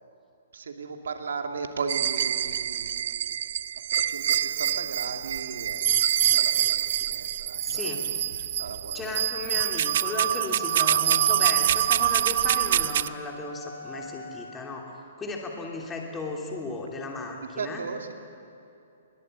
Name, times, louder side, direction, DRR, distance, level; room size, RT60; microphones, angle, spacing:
voice 1, 0.5-3.4 3.9-8.1 8.6-9.2 17.6-18.1, right 5 dB, 85° right, 5 dB, 2.8 m, -37 dB
sound 1, 1.9-13.1, right 10 dB, 55° right, 0.6 m, -25 dB
voice 2, 7.6-8.5 8.9-14.9 15.2-17.8, left 3 dB, 10° left, 1 dB, 2.8 m, -35 dB
sound 2, 10.5-14.8, left 2 dB, 45° left, 3.8 m, -45 dB
22.5 x 21.5 x 9.1 m, 2.7 s
hypercardioid pair, 160°, 0 cm